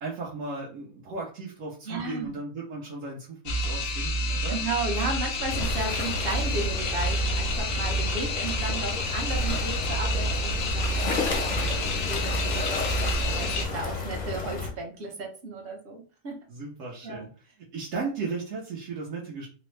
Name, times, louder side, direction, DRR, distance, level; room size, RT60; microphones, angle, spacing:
voice 1, 0.0-4.6 8.8-8.9 14.3-14.4 16.5-17.3 17.7-19.5, right 3 dB, 70° right, -5 dB, 1.1 m, -36 dB
voice 2, 1.8-2.3 4.5-16.4 17.0-17.3, right 2 dB, 50° right, 1 dB, 0.9 m, -34 dB
sound 1, 3.5-13.7, equal, 90° left, 1.1 m, -29 dB
sound 2, 5.5-14.7, left 3 dB, 50° left, 0.5 m, -32 dB
3.4 x 2.0 x 3.1 m, 0.39 s
omnidirectional pair, 1.4 m